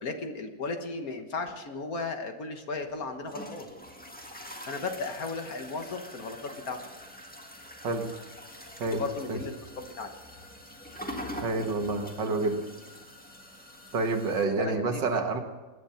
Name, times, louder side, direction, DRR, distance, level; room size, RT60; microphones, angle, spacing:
voice 1, 0.0-3.6 4.7-6.8 8.9-10.1 14.6-15.0, left 3 dB, 50° left, 5 dB, 1.7 m, -35 dB
sound 1, 2.7-14.4, equal, 5° left, 1.6 m, -44 dB
voice 2, 11.4-12.6 13.9-15.4, right 3 dB, 70° right, 5 dB, 2.1 m, -28 dB
20.5 x 10.0 x 5.7 m, 1.2 s
omnidirectional pair, 2.0 m